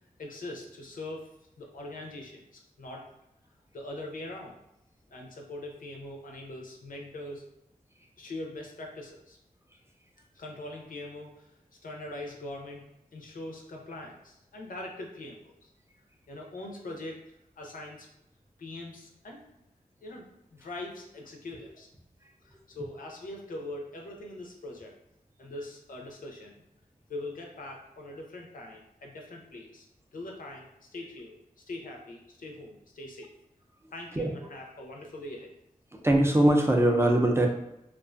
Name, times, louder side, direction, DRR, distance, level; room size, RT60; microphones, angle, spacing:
voice 1, 0.2-1.3 1.6-3.1 3.7-4.6 5.1-7.5 8.2-9.4 10.3-11.5 11.8-12.8 13.1-15.7 16.3-18.1 18.6-19.4 20.0-21.9 22.4-24.9 25.4-26.6 27.1-29.9 30.1-31.4 31.7-33.3 33.9-35.5, left 1 dB, 75° left, 0 dB, 0.5 m, -42 dB
voice 2, 35.9-37.5, right 1 dB, 20° right, 2 dB, 0.3 m, -22 dB
2.4 x 2.2 x 2.4 m, 0.85 s
wide cardioid pair, 75°, 14 cm